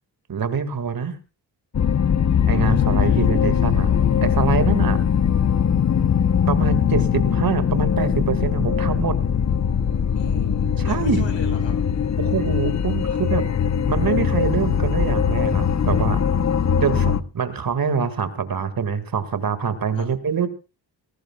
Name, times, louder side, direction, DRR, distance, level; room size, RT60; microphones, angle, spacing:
voice 1, 0.3-1.2 2.5-3.9 4.2-5.0 6.5-9.2 10.8-11.3 12.2-13.4 13.9-16.2 16.8-20.5, right 6 dB, 50° right, 10 dB, 2.1 m, -25 dB
sound 1, 1.7-17.2, left 7 dB, 40° left, 0.9 m, -20 dB
voice 2, 10.1-11.9 19.9-20.1, left 4 dB, 75° left, 5 dB, 6.4 m, -38 dB
20.0 x 19.0 x 2.4 m, 0.31 s
cardioid pair, 85°, 45 cm